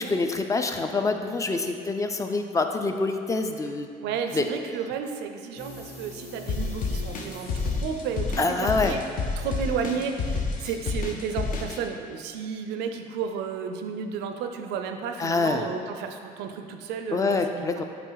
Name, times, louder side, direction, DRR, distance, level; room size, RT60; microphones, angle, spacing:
voice 1, 0.0-3.9 4.3-4.5 8.4-9.0 10.6-10.7 15.2-15.7 17.1-17.8, left 3 dB, 20° left, 5 dB, 0.4 m, -26 dB
voice 2, 4.0-9.0 9.4-17.8, right 6 dB, 90° right, 6 dB, 0.5 m, -32 dB
sound 1, 5.6-12.4 12.7-12.8, equal, 35° left, 1.4 m, -46 dB
sound 2, 6.5-11.8, left 4 dB, 55° left, 0.8 m, -29 dB
8.1 x 3.0 x 3.9 m, 2.3 s
cardioid pair, 110°, 17 cm